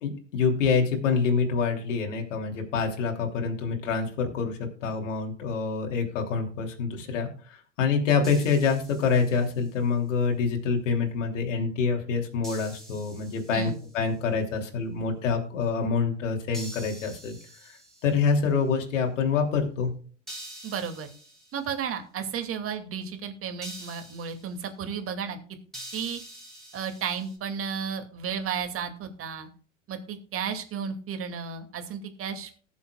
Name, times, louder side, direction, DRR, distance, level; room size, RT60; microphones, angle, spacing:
voice 1, 0.0-17.4 17.6-17.8 18.0-19.9, left 5 dB, 75° left, 2 dB, 3.1 m, -26 dB
sound 1, 8.2-9.7 12.4-14.0 16.5-18.4 20.3-21.7 23.6-24.6 25.7-27.4, right 1 dB, ahead, 5.3 m, -45 dB
voice 2, 13.5-13.8 20.6-21.1 21.5-25.4 25.9-26.2 26.7-29.5 29.9-32.6, right 7 dB, 35° right, 6 dB, 2.4 m, -33 dB
19.5 x 7.2 x 2.4 m, 0.43 s
hypercardioid pair, 95°, 37 cm